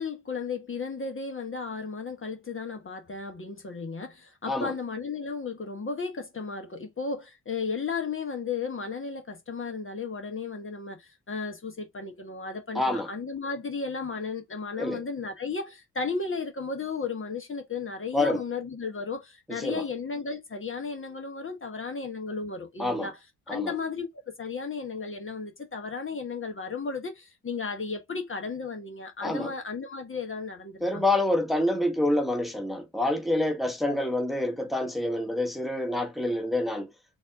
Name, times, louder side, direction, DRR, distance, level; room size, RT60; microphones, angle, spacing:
voice 1, 0.0-23.2 23.5-24.1 24.4-31.0, left 4 dB, 30° left, 1.2 m, -34 dB
voice 2, 12.7-13.1 14.8-15.0 18.1-18.4 19.5-19.8 22.8-23.1 23.5-23.7 29.2-29.5 30.8-36.9, left 1 dB, ahead, 1.3 m, -27 dB
4.1 x 2.6 x 3.5 m
hypercardioid pair, 45°, 39 cm